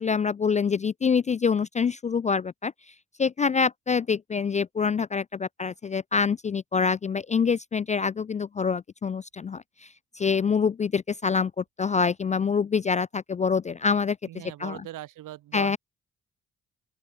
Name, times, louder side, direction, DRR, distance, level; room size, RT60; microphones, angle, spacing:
voice 1, 0.0-2.7 3.2-9.9 10.1-14.2 14.6-14.8 15.5-15.8, left 5 dB, 20° left, 0.3 m, -26 dB
voice 2, 14.2-15.8, right 14 dB, 60° right, 1.0 m, -40 dB
open air
hypercardioid pair, 45°, 35 cm